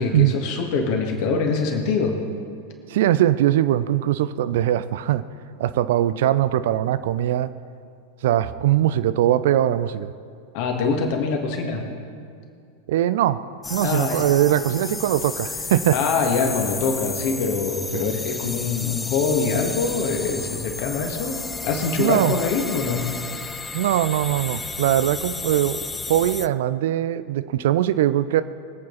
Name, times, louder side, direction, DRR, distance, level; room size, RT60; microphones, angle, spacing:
voice 1, 0.0-2.2 10.5-11.8 13.8-14.3 15.9-23.1, left 4 dB, 45° left, 2 dB, 2.1 m, -24 dB
voice 2, 2.9-5.2 5.6-7.5 8.2-10.1 12.9-13.4 13.7-16.0 17.9-18.1 22.0-22.3 23.7-25.8 26.1-28.4, right 12 dB, 55° right, 14 dB, 0.4 m, -21 dB
sound 1, 13.6-26.5, left 4 dB, 10° left, 0.4 m, -32 dB
23.0 x 8.5 x 4.1 m, 2.3 s
figure-of-eight pair, 90°, 0 cm